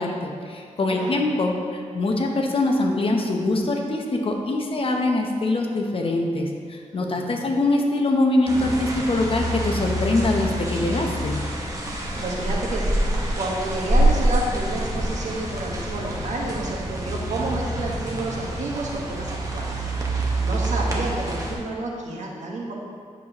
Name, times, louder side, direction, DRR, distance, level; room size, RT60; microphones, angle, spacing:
voice 1, 0.0-11.4, left 2 dB, 45° left, 2 dB, 0.9 m, -23 dB
voice 2, 0.9-1.2 6.9-7.5 11.9-13.0 13.4-22.7, right 2 dB, 70° right, -2 dB, 1.4 m, -30 dB
sound 1, 8.5-21.5, right 1 dB, 25° right, 1.2 m, -26 dB
9.1 x 7.5 x 3.0 m, 2.1 s
wide cardioid pair, 130°, 13 cm